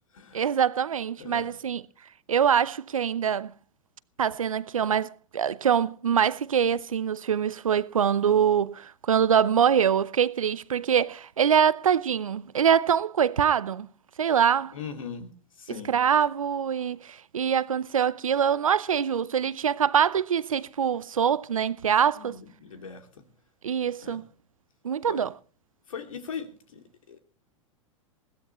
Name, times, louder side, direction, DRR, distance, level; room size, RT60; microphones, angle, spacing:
voice 1, 0.3-1.8 2.3-3.5 4.2-13.9 14.2-14.8 15.9-22.4 23.6-24.2 24.8-25.3, right 8 dB, 90° right, 0.7 m, -24 dB
voice 2, 1.2-1.6 14.7-15.3 15.6-15.9 22.1-23.2 24.0-24.2 25.1-25.3 25.9-27.2, left 6 dB, 80° left, 2.6 m, -40 dB
21.0 x 16.0 x 3.1 m
hypercardioid pair, 100°, 17 cm